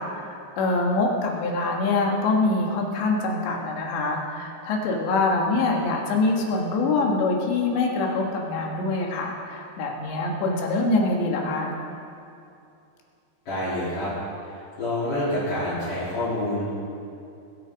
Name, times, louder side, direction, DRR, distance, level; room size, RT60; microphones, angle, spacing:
voice 1, 0.0-11.7, left 3 dB, 85° left, 0 dB, 3.9 m, -24 dB
voice 2, 13.5-14.1 14.5-16.7, left 1 dB, 50° left, -12 dB, 4.5 m, -27 dB
21.5 x 8.4 x 5.2 m, 2.6 s
omnidirectional pair, 5.0 m